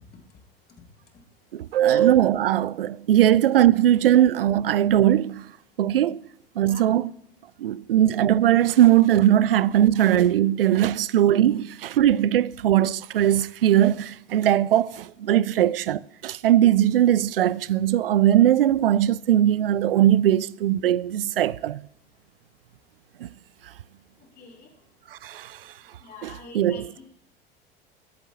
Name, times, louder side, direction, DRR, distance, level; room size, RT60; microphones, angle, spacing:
voice 1, 1.5-5.5 5.8-6.2 6.6-7.1 7.6-21.8 23.2-23.3 25.2-25.6 26.2-26.9, right 12 dB, 75° right, 0.4 m, -20 dB
voice 2, 24.4-24.7 26.0-27.0, left 4 dB, 35° left, 3.5 m, -44 dB
22.5 x 8.1 x 4.2 m
figure-of-eight pair, 75°, 29 cm